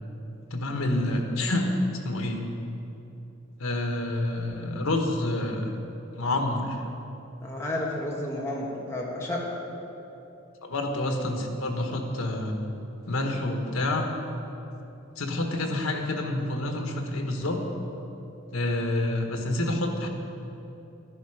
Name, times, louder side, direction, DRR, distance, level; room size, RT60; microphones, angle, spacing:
voice 1, 0.5-1.7 2.0-2.5 3.6-5.8 6.1-6.8 10.6-12.5 13.1-14.1 15.2-17.6 18.5-20.1, left 1 dB, 90° left, 3 dB, 1.5 m, -28 dB
voice 2, 7.4-9.5, left 1 dB, 15° left, -4 dB, 1.6 m, -31 dB
13.0 x 10.5 x 5.0 m, 3.0 s
head